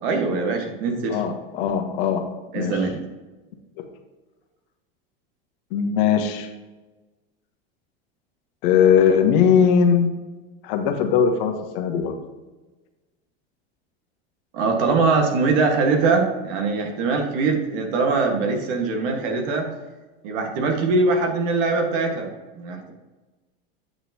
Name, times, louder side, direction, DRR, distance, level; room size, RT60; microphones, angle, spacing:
voice 1, 0.0-1.2 2.5-2.9 14.5-19.7 20.2-22.9, right 4 dB, 65° right, 3 dB, 1.6 m, -22 dB
voice 2, 1.1-2.2 2.5-2.8 5.7-6.5 8.6-10.1 10.6-12.1, left 7 dB, 65° left, 5 dB, 1.2 m, -19 dB
8.5 x 5.8 x 2.8 m, 1.2 s
hypercardioid pair, 95°, 29 cm